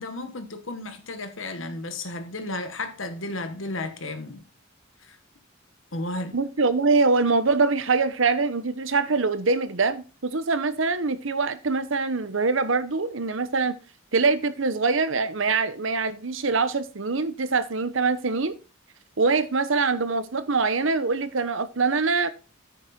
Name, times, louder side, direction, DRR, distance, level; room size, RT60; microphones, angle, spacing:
voice 1, 0.0-4.4 5.9-6.4, left 2 dB, 75° left, 1.6 m, -33 dB
voice 2, 6.3-13.7 14.1-18.5 19.2-22.3, right 4 dB, 70° right, 1.0 m, -24 dB
9.6 x 6.6 x 4.3 m
head